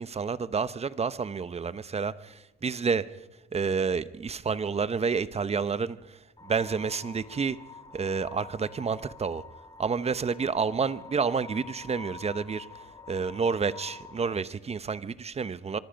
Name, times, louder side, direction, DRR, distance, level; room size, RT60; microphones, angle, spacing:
voice 1, 0.0-3.1 3.5-6.2 6.4-7.6 7.9-9.4 9.8-12.7 13.1-15.8, right 5 dB, 30° right, 15 dB, 0.9 m, -29 dB
sound 1, 6.4-14.4, left 4 dB, 20° left, 1.4 m, -47 dB
25.0 x 24.5 x 5.3 m, 1.1 s
cardioid pair, 90°, 20 cm